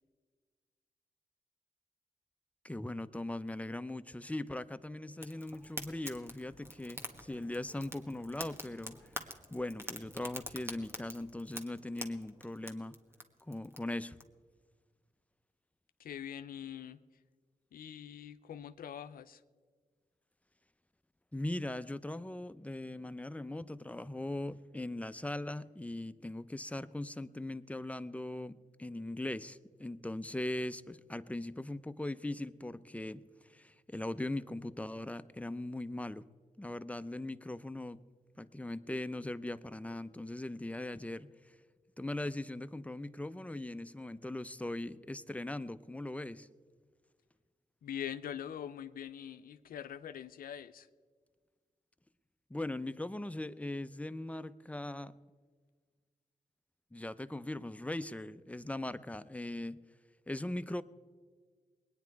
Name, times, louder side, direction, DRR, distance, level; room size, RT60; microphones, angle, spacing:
voice 1, 2.6-13.0 13.5-14.2 21.3-36.3 36.6-38.0 38.4-41.5 42.0-46.5 52.5-55.1 56.9-59.8 60.3-60.8, left 1 dB, 10° left, 13 dB, 0.6 m, -40 dB
Fire, 5.2-14.2, equal, 15° right, 1.6 m, -47 dB
voice 2, 16.0-17.0 17.7-19.4 47.8-50.9, left 9 dB, 85° left, 11 dB, 0.5 m, -43 dB
21.0 x 9.7 x 4.6 m, 1.5 s
cardioid pair, 45°, 15 cm